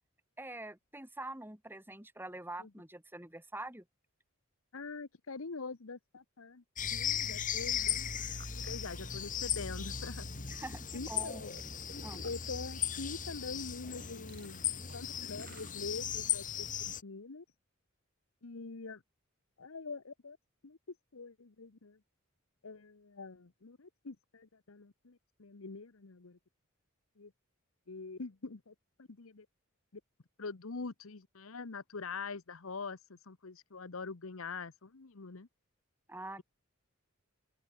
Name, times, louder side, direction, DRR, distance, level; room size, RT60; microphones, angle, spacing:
voice 1, 0.4-3.8 10.5-11.4 12.0-12.2 36.1-36.4, right 2 dB, 10° right, 4.5 m, -45 dB
voice 2, 4.7-6.6 6.9-10.3 10.9-11.5 12.2-14.6 14.9-17.4 18.4-19.0 19.6-20.4 20.6-20.8 21.1-22.0 22.6-26.4 27.2-27.3 27.9-29.5 29.9-30.0 30.4-35.5, left 4 dB, 75° left, 1.0 m, -44 dB
sound 1, 6.8-17.0, left 8 dB, 40° left, 1.9 m, -37 dB
sound 2, 7.8-15.7, right 2 dB, 50° right, 7.8 m, -58 dB
open air
head